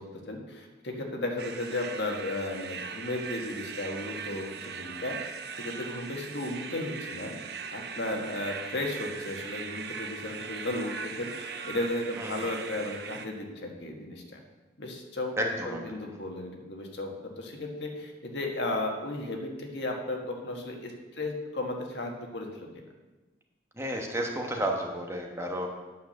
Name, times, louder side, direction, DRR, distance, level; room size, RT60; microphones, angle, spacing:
voice 1, 0.0-7.3 7.7-14.4 14.8-15.3 15.6-22.8, left 2 dB, 75° left, 2 dB, 1.6 m, -35 dB
sound 1, 1.4-13.3, right 5 dB, 60° right, 0.7 m, -40 dB
voice 2, 15.4-15.9 23.8-25.7, right 1 dB, 15° right, 1 dB, 1.1 m, -31 dB
9.4 x 5.9 x 6.6 m, 1.2 s
head